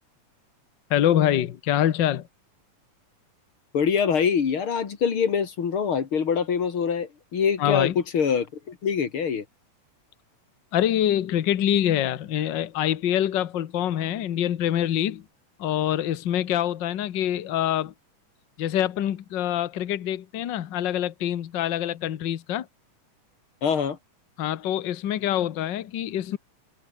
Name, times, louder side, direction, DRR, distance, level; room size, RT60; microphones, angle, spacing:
voice 1, 0.9-2.3 7.6-8.0 10.7-15.2 15.6-17.9 18.6-22.7 24.4-26.4, left 11 dB, 80° left, 1.0 m, -25 dB
voice 2, 3.7-9.4 23.6-24.0, left 6 dB, 45° left, 2.9 m, -24 dB
omnidirectional pair, 3.6 m